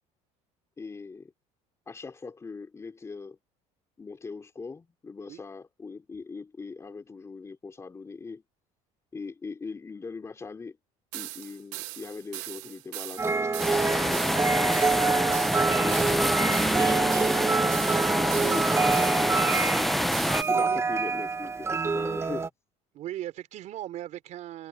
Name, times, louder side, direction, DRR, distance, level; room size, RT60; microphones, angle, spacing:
voice 1, 0.8-1.3 1.9-3.4 4.0-8.4 9.1-10.8 11.1-17.6 18.1-19.6 20.3-22.5, left 4 dB, 20° left, 3.3 m, -40 dB
sound 1, 11.1-20.6, right 21 dB, 90° right, 0.9 m, -40 dB
sound 2, 13.2-22.5, right 4 dB, 20° right, 1.1 m, -27 dB
sound 3, 13.6-20.4, equal, ahead, 0.6 m, -26 dB
voice 2, 22.9-24.7, right 13 dB, 55° right, 4.0 m, -38 dB
cardioid pair, 120°, 14 cm